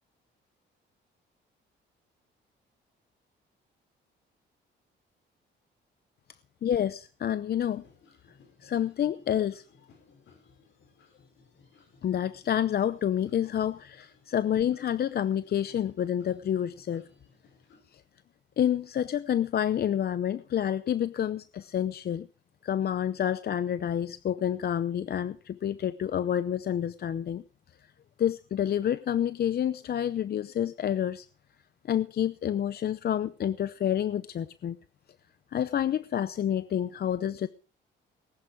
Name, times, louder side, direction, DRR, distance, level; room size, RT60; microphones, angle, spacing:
voice 1, 6.6-7.8 8.6-9.6 12.0-17.0 17.9-18.0 18.6-22.3 22.6-27.4 28.2-31.3 31.8-34.8 35.5-37.5, left 10 dB, 55° left, 0.7 m, -28 dB
sound 1, 7.6-17.8, left 4 dB, 70° left, 5.2 m, -61 dB
19.5 x 11.0 x 4.9 m
cardioid pair, 90°, 20 cm